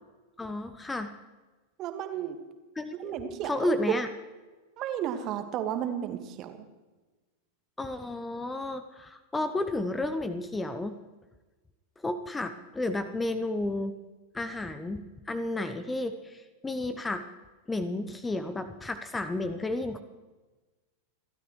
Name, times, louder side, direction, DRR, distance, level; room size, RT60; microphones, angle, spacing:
voice 1, 0.4-1.1 2.7-4.1 7.8-10.9 12.0-13.9 14.3-17.2 17.7-20.0, left 2 dB, 10° left, 10 dB, 0.9 m, -32 dB
voice 2, 1.8-2.4 3.0-3.9 4.8-6.6, right 10 dB, 35° right, 7 dB, 1.7 m, -33 dB
30.0 x 12.5 x 3.2 m, 1.2 s
figure-of-eight pair, 90°, 0 cm